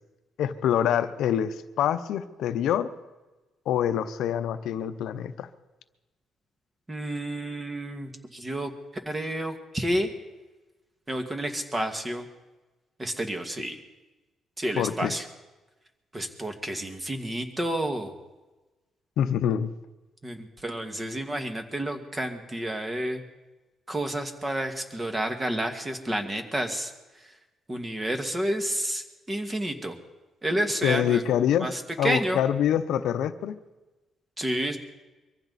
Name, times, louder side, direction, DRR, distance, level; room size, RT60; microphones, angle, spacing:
voice 1, 0.4-2.9 3.7-5.5 14.8-15.1 19.2-19.7 30.8-31.7 32.0-33.6, left 9 dB, 80° left, 11 dB, 0.7 m, -25 dB
voice 2, 6.9-8.7 9.1-10.1 11.1-12.3 13.0-13.8 14.6-15.2 16.1-18.1 20.2-23.2 23.9-26.9 27.7-30.0 30.4-31.2 31.6-32.4 34.4-34.8, right 1 dB, 20° right, 6 dB, 2.0 m, -30 dB
23.0 x 15.0 x 4.2 m, 1.1 s
cardioid pair, 90°, 0 cm